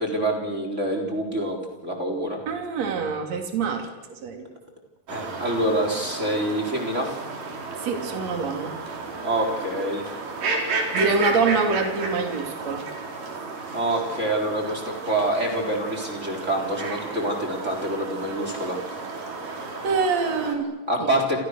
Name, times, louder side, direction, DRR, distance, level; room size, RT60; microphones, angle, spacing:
voice 1, 0.0-2.4 5.1-7.2 9.2-10.1 13.7-18.8 20.9-21.4, right 1 dB, 20° right, 2 dB, 4.2 m, -26 dB
voice 2, 2.5-4.4 7.8-8.8 10.9-12.8 19.8-20.7 21.0-21.1, right 4 dB, 50° right, 4 dB, 4.1 m, -25 dB
sound 1, 5.1-20.5, right 3 dB, 70° right, 5.3 m, -33 dB
29.5 x 27.0 x 6.6 m, 1.1 s
omnidirectional pair, 3.9 m